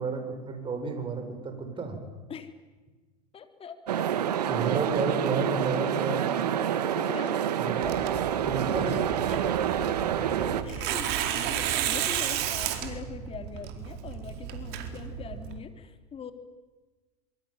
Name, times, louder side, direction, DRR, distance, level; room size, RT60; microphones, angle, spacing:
voice 1, 0.0-2.0 4.5-6.3 7.6-8.0 8.4-9.0 10.2-10.6, right 4 dB, 25° right, 6 dB, 7.3 m, -31 dB
voice 2, 3.3-4.2 7.0-7.4 9.3-9.5 10.6-16.3, left 6 dB, 30° left, 8 dB, 3.7 m, -42 dB
sound 1, 3.9-10.6, right 9 dB, 85° right, 2.3 m, -27 dB
Tearing, 7.8-15.6, right 10 dB, 55° right, 4.4 m, -33 dB
26.5 x 24.0 x 9.1 m, 1.3 s
hypercardioid pair, 105°, 20 cm